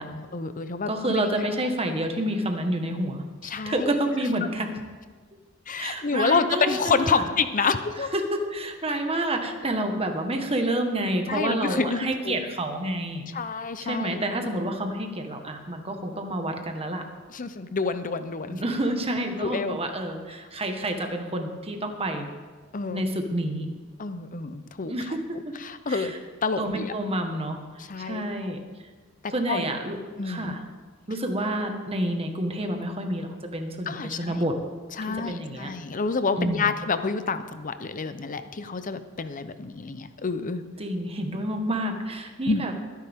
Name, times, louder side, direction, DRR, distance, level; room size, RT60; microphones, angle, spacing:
voice 1, 0.0-1.2 3.4-3.9 5.7-8.1 11.3-12.4 13.3-14.2 17.3-18.6 19.4-19.8 22.7-23.0 24.0-25.1 25.6-26.1 26.4-26.9 27.8-28.2 29.2-29.6 30.2-30.6 33.9-34.4 35.0-40.6 42.5-42.6, left 4 dB, 40° left, 11 dB, 0.7 m, -28 dB
voice 2, 0.9-4.8 5.8-7.3 8.1-13.3 13.8-17.0 18.5-22.3 22.9-23.7 24.8-25.5 25.9-26.2 26.6-27.6 28.0-28.6 29.3-30.0 30.2-30.6 31.1-34.5 35.0-35.7 36.4-36.7 40.8-42.7, right 1 dB, 30° right, 4 dB, 1.5 m, -29 dB
21.5 x 10.5 x 3.7 m, 1.4 s
head